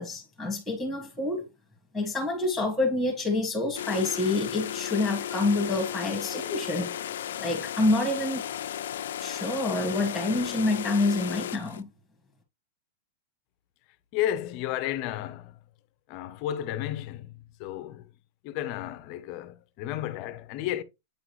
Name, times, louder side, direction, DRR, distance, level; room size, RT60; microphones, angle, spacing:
voice 1, 0.0-1.5 1.9-6.9 7.4-8.4 9.2-11.9, left 2 dB, 5° left, 1.7 m, -27 dB
sound 1, 3.7-11.8, left 10 dB, 75° left, 0.5 m, -35 dB
voice 2, 14.1-15.6 16.1-17.3 17.6-18.0 18.4-20.8, left 12 dB, 35° left, 0.7 m, -32 dB
8.8 x 3.8 x 3.1 m
supercardioid pair, 170°, 0 cm